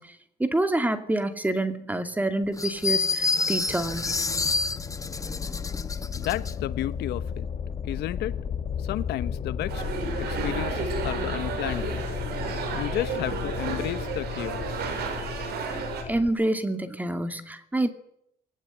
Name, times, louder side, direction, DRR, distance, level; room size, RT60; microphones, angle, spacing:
voice 1, 0.0-4.2 16.1-17.9, right 1 dB, 10° right, 9 dB, 2.6 m, -27 dB
sound 1, 2.6-6.5, left 3 dB, 20° left, 1.3 m, -28 dB
sound 2, 3.7-16.3, left 7 dB, 40° left, 1.9 m, -34 dB
voice 2, 6.2-7.5 7.8-8.4 8.8-9.8 10.2-12.1 12.7-14.8, left 14 dB, 80° left, 14 dB, 1.2 m, -32 dB
sound 3, 9.7-16.0, right 5 dB, 75° right, 6.0 m, -32 dB
21.0 x 18.5 x 9.9 m, 0.73 s
cardioid pair, 110°, 17 cm